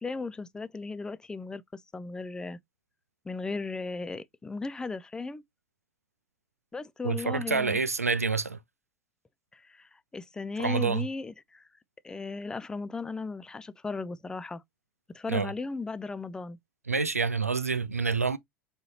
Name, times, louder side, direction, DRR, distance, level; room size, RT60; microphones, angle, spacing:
voice 1, 0.0-2.6 3.3-5.4 6.7-7.8 9.5-11.7 12.0-14.6 15.1-16.6, left 3 dB, 10° left, 0.4 m, -36 dB
voice 2, 7.0-8.6 10.6-11.1 15.3-15.5 16.9-18.4, right 4 dB, 85° right, 0.4 m, -27 dB
4.3 x 3.7 x 2.8 m
figure-of-eight pair, 80°, 8 cm